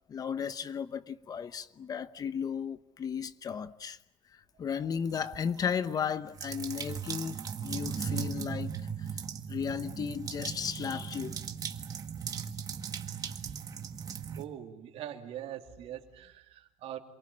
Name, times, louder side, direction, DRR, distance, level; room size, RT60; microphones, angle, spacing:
voice 1, 0.1-4.0 4.3-8.7 9.5-11.4, left 7 dB, 35° left, 1.0 m, -35 dB
sound 1, 5.1-5.7 6.3-14.4, right 7 dB, 35° right, 1.7 m, -38 dB
voice 2, 14.3-17.0, right 11 dB, 65° right, 2.9 m, -42 dB
28.0 x 23.0 x 8.8 m
cardioid pair, 150°, 11 cm